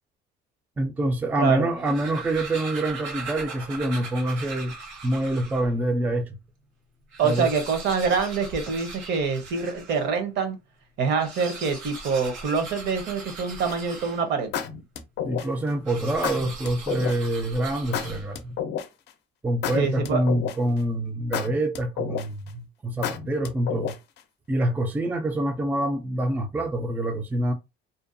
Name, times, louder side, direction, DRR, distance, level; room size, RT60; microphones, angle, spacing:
voice 1, 0.8-4.7 5.0-6.4 7.2-7.5 15.2-18.5 19.4-23.9 24.5-27.5, right 1 dB, 10° right, 0.3 m, -26 dB
voice 2, 1.4-1.7 7.2-10.6 11.0-14.5 19.7-20.2, right 5 dB, 60° right, 0.8 m, -25 dB
sound 1, 1.6-5.7 6.3-6.4 6.6-6.7 7.0-10.1 11.1-14.5 15.8-18.5, right 3 dB, 80° right, 1.1 m, -39 dB
sound 2, 13.7-14.0 14.5-15.7 16.2-17.2 17.9-19.1 19.6-20.8 21.3-22.5 23.0-24.2, left 8 dB, 60° left, 0.5 m, -30 dB
2.7 x 2.2 x 2.5 m
cardioid pair, 130°, 20 cm